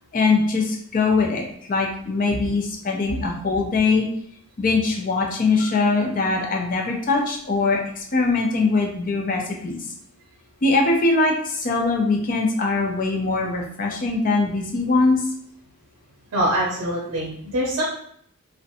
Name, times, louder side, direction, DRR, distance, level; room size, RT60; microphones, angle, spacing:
voice 1, 0.1-1.4 1.7-4.1 4.6-9.8 10.6-15.2, left 3 dB, 40° left, 0 dB, 0.4 m, -22 dB
voice 2, 16.3-17.8, right 1 dB, 65° right, -4 dB, 0.6 m, -24 dB
2.5 x 2.1 x 2.7 m, 0.65 s
head